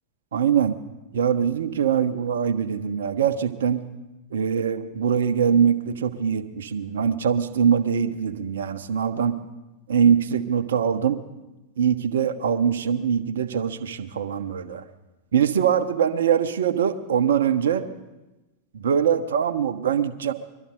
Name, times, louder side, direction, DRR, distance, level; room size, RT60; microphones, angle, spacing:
voice 1, 0.3-0.8 1.1-3.8 4.3-9.4 9.9-11.2 11.8-14.8 15.3-17.9 18.7-20.3, right 8 dB, 65° right, 11 dB, 0.8 m, -23 dB
22.0 x 12.5 x 3.8 m, 1.1 s
figure-of-eight pair, 90°, 0 cm